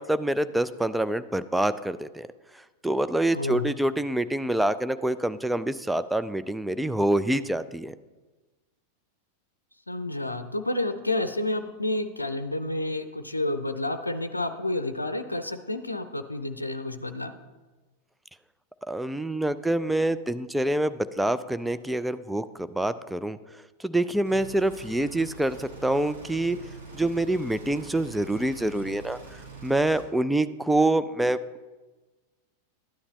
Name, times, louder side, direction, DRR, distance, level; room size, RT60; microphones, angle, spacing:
voice 1, 0.0-2.3 2.8-7.9 18.9-22.4 22.7-23.4 23.8-26.6 26.9-29.2 29.6-31.4, right 1 dB, 5° right, 12 dB, 0.4 m, -26 dB
voice 2, 3.3-3.7 9.9-17.3, left 2 dB, 85° left, 9 dB, 0.5 m, -30 dB
sound 1, 24.3-30.0, right 4 dB, 65° right, 2.8 m, -44 dB
12.5 x 9.7 x 3.1 m, 1.2 s
figure-of-eight pair, 90°, 0 cm